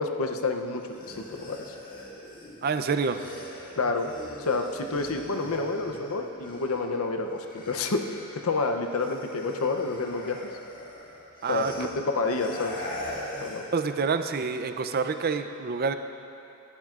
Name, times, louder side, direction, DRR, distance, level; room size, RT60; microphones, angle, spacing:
voice 1, 0.0-1.7 3.8-4.1 4.4-10.4 11.5-11.9 12.1-12.8 13.4-13.6, left 3 dB, 85° left, 5 dB, 0.7 m, -29 dB
sound 1, 0.8-7.0 7.3-13.8, left 1 dB, 45° left, 1.7 m, -42 dB
voice 2, 2.6-3.3 11.4-11.9 13.7-15.9, right 5 dB, 45° right, 9 dB, 0.5 m, -27 dB
18.5 x 12.0 x 2.5 m, 2.7 s
head